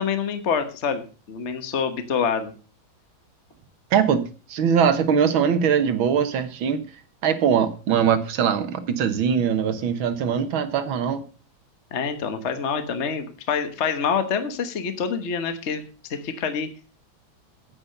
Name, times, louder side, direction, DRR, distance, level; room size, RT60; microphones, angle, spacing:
voice 1, 0.0-2.5 11.9-15.8 16.1-16.7, left 6 dB, 40° left, 9 dB, 1.4 m, -26 dB
voice 2, 3.9-4.2 4.5-6.9 7.2-11.2, right 7 dB, 85° right, 10 dB, 2.1 m, -21 dB
9.8 x 8.8 x 6.6 m, 0.35 s
omnidirectional pair, 2.1 m